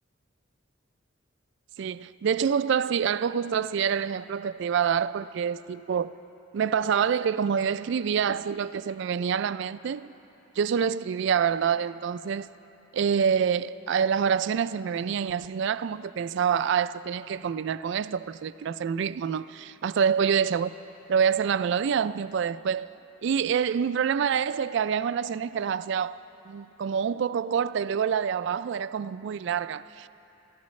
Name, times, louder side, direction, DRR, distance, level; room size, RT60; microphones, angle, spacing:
voice 1, 1.8-6.1 6.5-10.1 10.6-12.5 12.9-20.7 21.1-22.9 23.2-26.2 26.5-30.1, right 7 dB, 65° right, 0.3 m, -26 dB
29.0 x 13.5 x 3.2 m
head